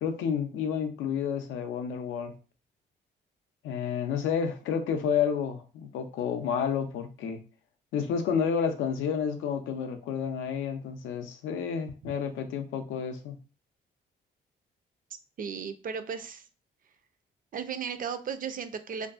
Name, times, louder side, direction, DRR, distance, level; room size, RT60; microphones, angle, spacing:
voice 1, 0.0-2.3 3.6-7.4 7.9-13.4, left 7 dB, 85° left, 7 dB, 0.4 m, -30 dB
voice 2, 15.4-16.5 17.5-19.1, right 6 dB, 45° right, 10 dB, 0.4 m, -35 dB
2.5 x 2.3 x 2.4 m, 0.34 s
supercardioid pair, 65°, 20 cm